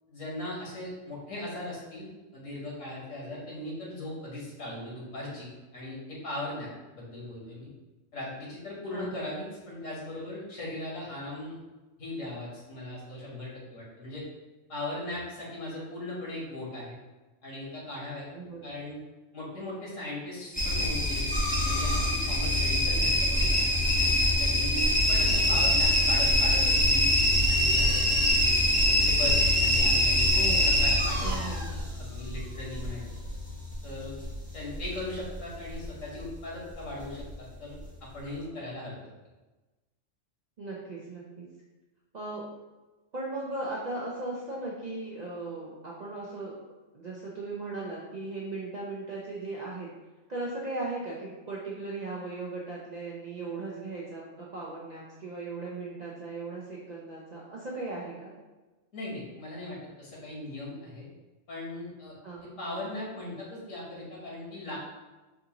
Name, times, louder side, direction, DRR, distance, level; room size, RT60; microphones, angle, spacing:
voice 1, 0.1-7.7 8.1-11.6 12.0-14.2 14.7-16.9 17.4-18.3 18.6-19.0 19.3-21.3 21.6-23.9 24.4-28.3 28.8-30.3 30.6-33.0 33.8-34.2 34.5-39.0 58.9-61.0 61.5-62.1 62.6-64.8, left 1 dB, 75° left, -5 dB, 1.5 m, -39 dB
voice 2, 18.3-18.7 25.2-25.7 30.3-30.9 31.2-31.8 40.6-41.5 42.1-42.5 43.1-46.6 46.9-49.9 50.3-58.3 62.2-62.5, right 2 dB, 70° right, -4 dB, 0.4 m, -37 dB
sound 1, 20.5-35.4 35.7-36.3 36.9-37.3 37.8-37.9, left 1 dB, 10° left, 0.5 m, -24 dB
4.5 x 2.5 x 2.8 m, 1.2 s
omnidirectional pair, 1.4 m